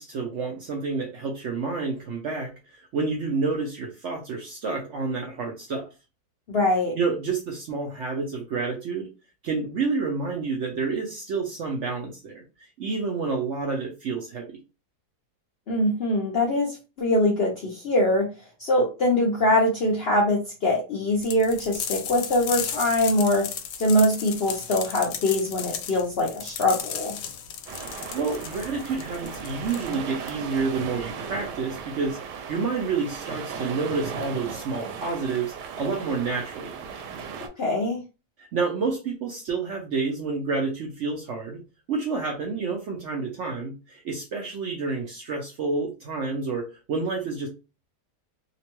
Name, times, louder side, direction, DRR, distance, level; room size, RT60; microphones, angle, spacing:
voice 1, 0.0-5.9 7.0-9.1 9.4-14.6 27.8-36.8 38.4-41.6 41.9-47.5, right 4 dB, 65° right, 1 dB, 0.7 m, -29 dB
voice 2, 6.5-7.0 15.7-18.3 18.6-23.5 23.8-27.1 37.6-38.0, left 1 dB, 60° left, -2 dB, 0.6 m, -23 dB
sound 1, 21.2-30.6, left 8 dB, 80° left, 1.1 m, -35 dB
sound 2, 27.7-37.5, right 6 dB, 85° right, 1.2 m, -37 dB
2.9 x 2.1 x 2.9 m, 0.30 s
omnidirectional pair, 1.7 m